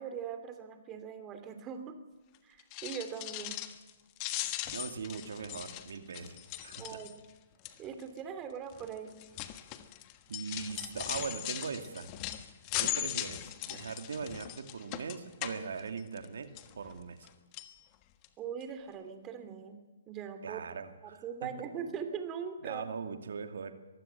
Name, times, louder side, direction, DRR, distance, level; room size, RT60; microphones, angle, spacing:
voice 1, 0.0-1.9 2.4-3.6 6.8-7.2 7.8-9.1 18.4-19.8 20.1-20.7 21.0-22.8, right 7 dB, 20° right, 8 dB, 2.7 m, -41 dB
sound 1, 2.6-3.9 4.2-7.3 7.6-8.0 8.7-16.3 16.6-17.3 17.5-17.7 18.2-18.3 18.6-18.7, left 14 dB, 30° left, 1.4 m, -39 dB
voice 2, 4.7-7.0 10.3-12.1 12.8-16.5 16.8-17.3 20.4-21.5 22.6-23.7, right 5 dB, 70° right, 7 dB, 2.4 m, -40 dB
23.0 x 15.5 x 7.7 m, 1.1 s
hypercardioid pair, 135°, 0 cm